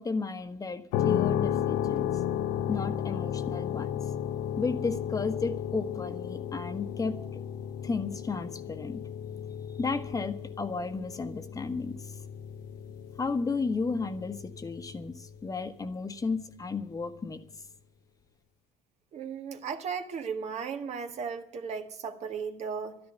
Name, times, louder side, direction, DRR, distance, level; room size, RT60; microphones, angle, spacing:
voice 1, 0.0-2.1 2.7-4.0 4.6-7.4 7.8-9.0 9.8-12.1 13.2-17.4, left 4 dB, 25° left, 9 dB, 1.3 m, -33 dB
sound 1, 0.9-15.6, left 10 dB, 90° left, 1.0 m, -34 dB
voice 2, 19.1-23.0, right 6 dB, 55° right, 6 dB, 1.7 m, -36 dB
11.5 x 10.5 x 9.4 m, 0.67 s
supercardioid pair, 90°, 14 cm